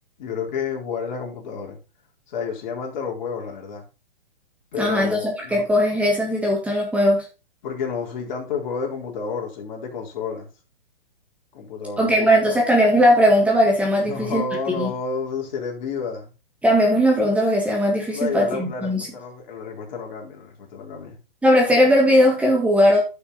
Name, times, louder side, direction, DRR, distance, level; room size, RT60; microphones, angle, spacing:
voice 1, 0.2-1.8 2.3-3.8 4.7-5.7 7.6-10.5 11.5-12.6 14.0-16.3 18.1-21.2, left 5 dB, 50° left, 3.9 m, -30 dB
voice 2, 4.8-7.2 12.0-14.4 14.8-14.9 16.6-19.1 21.4-23.0, equal, 5° right, 1.8 m, -18 dB
11.0 x 6.1 x 4.0 m
hypercardioid pair, 140°, 29 cm